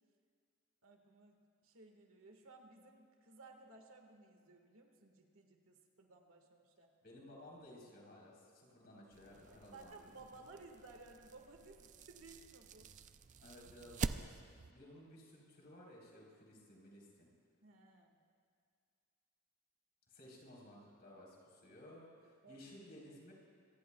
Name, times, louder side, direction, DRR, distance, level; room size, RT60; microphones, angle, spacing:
voice 1, 0.8-6.9 9.5-12.9 17.6-18.2 22.2-22.6, right 3 dB, 65° right, 3 dB, 1.7 m, -59 dB
voice 2, 7.0-10.2 13.4-14.3 14.7-17.3 20.1-23.3, left 1 dB, 45° left, -3 dB, 3.9 m, -57 dB
sound 1, 9.1-14.7, right 4 dB, 35° right, 0.3 m, -46 dB
26.0 x 19.5 x 2.3 m, 2.4 s
head